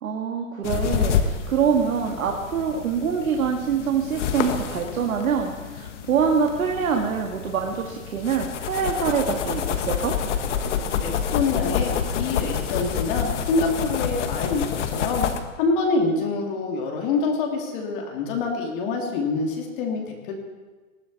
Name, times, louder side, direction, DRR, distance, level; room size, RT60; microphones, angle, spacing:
voice 1, 0.0-10.1, right 6 dB, 75° right, 2 dB, 1.9 m, -25 dB
sound 1, 0.6-15.4, left 7 dB, 60° left, 1.5 m, -28 dB
voice 2, 11.0-15.3 15.6-20.3, left 3 dB, 40° left, 0 dB, 2.5 m, -26 dB
19.5 x 14.0 x 4.1 m, 1.3 s
hypercardioid pair, 155°, 41 cm